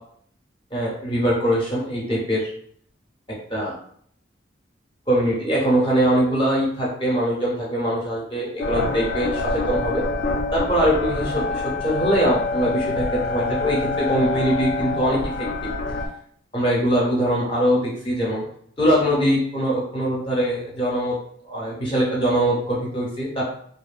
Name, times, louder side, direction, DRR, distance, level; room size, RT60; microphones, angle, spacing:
voice 1, 0.7-2.5 3.5-3.7 5.1-10.0 10.5-15.5 16.5-18.4 18.8-21.2 21.4-23.5, equal, 25° left, -4 dB, 0.6 m, -22 dB
sound 1, 8.6-16.1, left 3 dB, 65° left, 0.3 m, -26 dB
2.7 x 2.2 x 2.4 m, 0.63 s
head